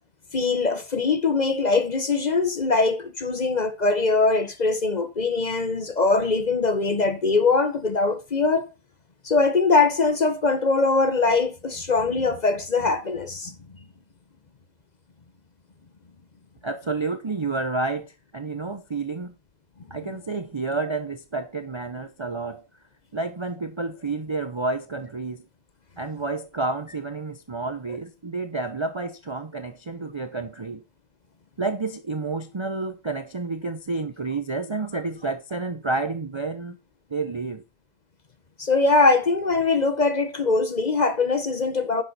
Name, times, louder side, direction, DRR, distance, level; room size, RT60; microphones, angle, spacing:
voice 1, 0.3-8.7 9.2-13.5 38.6-42.0, left 3 dB, 35° left, 0.9 m, -22 dB
voice 2, 16.6-19.3 19.9-22.7 23.1-25.4 26.0-30.8 31.6-36.8 37.1-37.6, right 3 dB, 35° right, 0.5 m, -30 dB
10.5 x 7.2 x 4.1 m
omnidirectional pair, 1.4 m